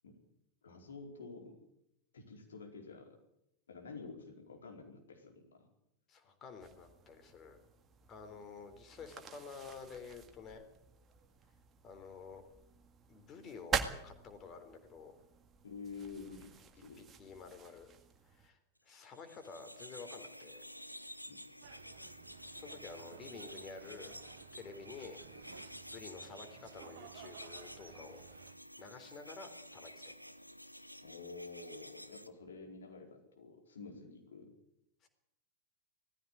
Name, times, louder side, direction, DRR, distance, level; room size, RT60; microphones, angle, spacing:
voice 1, 0.6-1.5 2.1-3.1 3.7-5.7 15.6-17.1 21.3-21.4 31.0-34.5, left 4 dB, 70° left, 3 dB, 4.6 m, -49 dB
voice 2, 6.1-7.6 8.1-10.6 11.8-12.4 13.1-13.8 14.0-15.1 17.2-17.9 18.3-18.6 18.8-20.6 22.6-24.2 24.5-25.2 25.9-28.2 28.8-30.1 35.0-35.1, left 5 dB, 30° left, 7 dB, 3.7 m, -50 dB
sound 1, 6.6-18.5, right 6 dB, 25° right, 1.9 m, -45 dB
sound 2, 19.0-32.3, equal, 90° left, 0.9 m, -51 dB
sound 3, 21.6-28.6, right 10 dB, 55° right, 1.2 m, -56 dB
18.5 x 15.0 x 9.7 m, 0.82 s
figure-of-eight pair, 90°, 0 cm